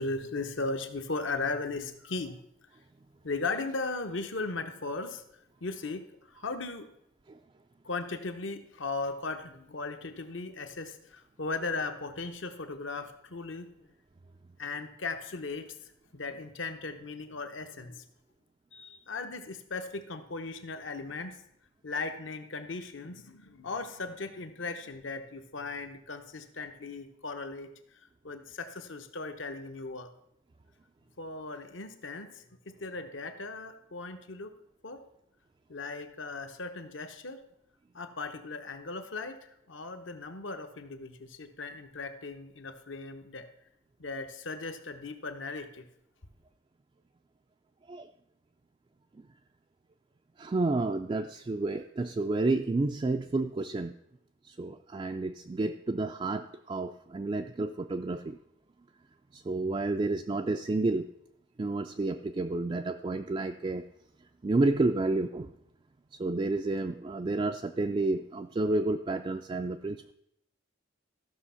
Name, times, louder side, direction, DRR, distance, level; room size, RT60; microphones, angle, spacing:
voice 1, 0.0-2.4 3.2-5.2 5.6-6.0 6.3-6.9 7.8-13.7 14.6-15.7 16.1-18.0 18.7-21.4 21.8-27.7 28.2-30.1 31.2-34.5 34.8-35.0 35.7-37.4 37.9-43.5 44.0-45.9, left 3 dB, 65° left, 7 dB, 1.0 m, -37 dB
voice 2, 50.4-53.9 54.5-58.4 59.3-61.1 61.6-63.9 64.4-65.5 66.1-70.1, right 2 dB, 25° right, 5 dB, 0.3 m, -30 dB
14.0 x 6.2 x 5.7 m, 0.77 s
head